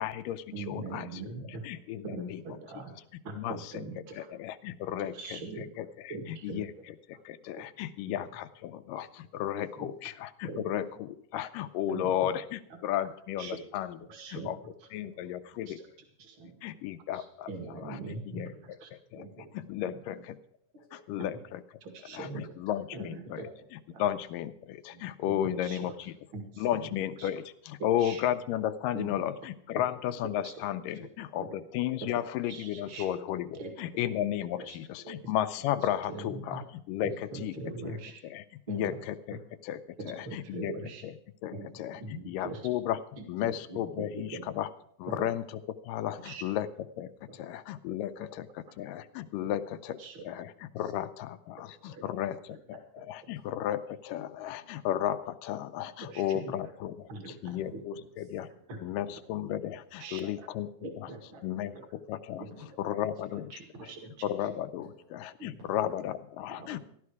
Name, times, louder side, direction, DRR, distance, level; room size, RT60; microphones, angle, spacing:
voice 1, 0.0-1.3 1.6-2.4 3.4-3.9 4.1-7.0 7.3-14.0 14.3-14.6 14.9-15.8 16.6-17.5 17.8-18.0 18.3-18.5 19.1-19.3 19.5-20.4 20.9-21.6 22.1-26.1 26.6-37.5 37.8-38.0 38.2-39.8 40.6-40.7 41.0-41.1 41.4-42.0 42.3-43.0 43.3-44.7 45.0-46.2 46.4-46.7 47.0-49.6 49.9-50.0 50.2-52.4 52.7-56.9 57.3-57.9 58.3-58.5 58.8-60.7 61.0-61.1 61.4-61.7 62.1-62.4 62.8-63.6 64.2-64.8 65.4-66.8, left 11 dB, 85° left, 10 dB, 2.3 m, -34 dB
voice 2, 0.5-1.6 2.0-2.9 3.2-4.3 5.0-5.7 6.1-6.7 7.6-7.7 8.1-8.2 8.9-9.0 9.8-9.9 10.4-10.7 11.9-12.1 13.4-13.6 14.0-14.7 15.1-15.3 15.7-15.9 16.2-16.6 17.1-18.5 18.8-18.9 19.1-19.5 19.8-20.0 20.9-21.4 21.8-22.5 22.9-23.7 23.9-24.1 24.9-25.0 25.5-25.9 26.3-27.3 27.8-28.2 28.9-29.1 30.4-30.5 31.0-31.1 31.4-31.5 32.0-33.1 33.5-33.7 34.7-34.8 35.0-35.2 36.1-36.6 37.0-38.2 38.7-39.0 39.3-39.4 40.3-41.0 41.5-41.7 41.9-42.6 43.2-44.1 44.3-44.4 45.1-45.4 46.3-46.4 47.3-47.4 48.2-48.3 50.0-50.3 51.8-52.4 53.0-53.1 55.8-56.5 57.1-57.4 57.7-57.8 58.7-59.2 60.0-60.3 60.8-61.4 62.4-62.5 63.3-64.0 65.4-65.6 66.7-66.8, right 3 dB, 40° right, 4 dB, 2.4 m, -42 dB
voice 3, 16.7-17.1 40.1-40.2 46.2-46.4 49.4-49.5 50.8-50.9 52.3-52.4 53.3-53.4 54.5-54.6 57.5-58.4 59.0-59.1 60.1-60.3 62.5-63.0 63.7-64.2 64.8-65.9 66.6-66.8, equal, 85° right, -3 dB, 7.4 m, -56 dB
14.5 x 12.0 x 4.7 m, 0.67 s
omnidirectional pair, 3.8 m